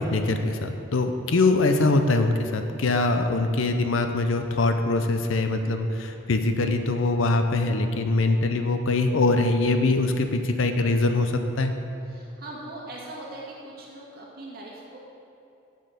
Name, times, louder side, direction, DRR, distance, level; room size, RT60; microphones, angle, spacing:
voice 1, 0.0-11.7, left 2 dB, 85° left, 7 dB, 0.6 m, -23 dB
voice 2, 12.0-15.0, right 2 dB, 50° right, -4 dB, 2.1 m, -40 dB
7.6 x 7.4 x 6.7 m, 2.7 s
head